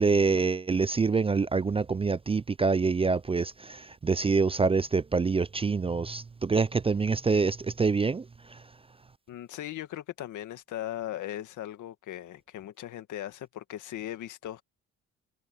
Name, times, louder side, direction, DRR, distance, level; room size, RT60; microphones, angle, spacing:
voice 1, 0.0-8.6, right 4 dB, 20° right, 0.4 m, -26 dB
voice 2, 9.3-14.6, left 12 dB, 80° left, 2.0 m, -38 dB
cardioid pair, 90°, 30 cm